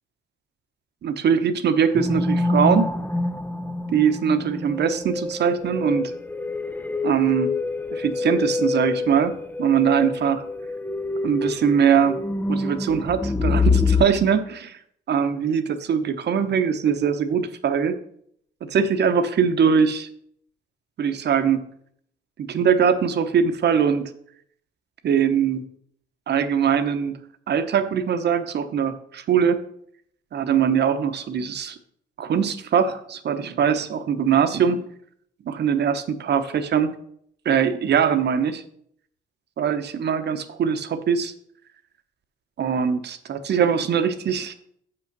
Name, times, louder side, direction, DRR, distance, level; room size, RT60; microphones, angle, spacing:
voice 1, 1.0-2.9 3.9-6.1 7.0-7.5 7.9-10.4 11.2-12.2 12.5-14.8 15.1-18.0 18.6-20.1 21.0-21.6 22.4-24.0 25.0-25.6 26.3-27.1 27.5-29.6 30.3-31.8 32.2-34.8 35.4-36.9 37.4-38.6 39.6-41.3 42.6-44.5, right 7 dB, 60° right, 10 dB, 1.0 m, -22 dB
sound 1, 1.9-14.1, left 3 dB, 10° left, 0.6 m, -26 dB
6.9 x 6.0 x 5.9 m, 0.68 s
cardioid pair, 90°, 20 cm